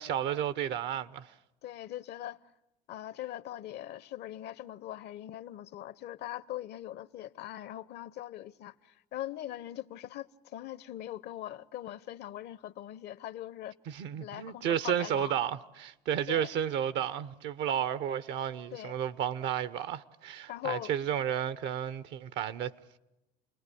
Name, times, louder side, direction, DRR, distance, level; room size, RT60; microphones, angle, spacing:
voice 1, 0.0-1.3 13.9-22.7, right 9 dB, 65° right, 1.0 m, -32 dB
voice 2, 1.6-2.4 2.9-13.8 14.2-15.4 16.3-16.5 18.7-19.0 20.5-20.9, left 13 dB, 60° left, 0.8 m, -41 dB
29.5 x 20.5 x 8.5 m
hypercardioid pair, 75°, 20 cm